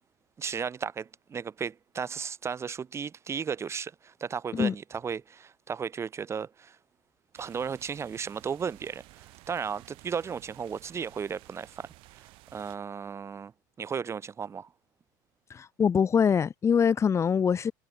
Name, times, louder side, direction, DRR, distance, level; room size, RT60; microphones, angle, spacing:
voice 1, 0.4-6.8 7.3-13.5 13.8-14.7, right 6 dB, 25° right, 1.9 m, -35 dB
sound 1, 7.3-12.8, right 22 dB, 60° right, 5.7 m, -54 dB
voice 2, 15.5-17.7, left 7 dB, 25° left, 1.7 m, -24 dB
hypercardioid pair, 95°, 10 cm